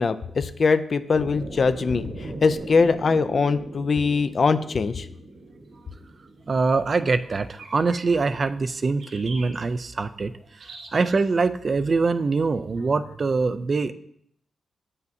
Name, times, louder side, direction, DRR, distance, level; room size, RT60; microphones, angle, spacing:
voice 1, 0.0-5.1, left 4 dB, 45° left, 12 dB, 0.3 m, -22 dB
sound 1, 1.1-7.2, right 2 dB, 60° right, 1.1 m, -39 dB
sound 2, 4.5-4.6 7.5-8.4 9.0-9.6 10.6-11.4, right 3 dB, 90° right, 1.2 m, -43 dB
voice 2, 6.5-10.3 10.9-13.9, right 4 dB, 40° right, 11 dB, 0.3 m, -23 dB
8.0 x 5.6 x 2.6 m, 0.70 s
wide cardioid pair, 110°, 0 cm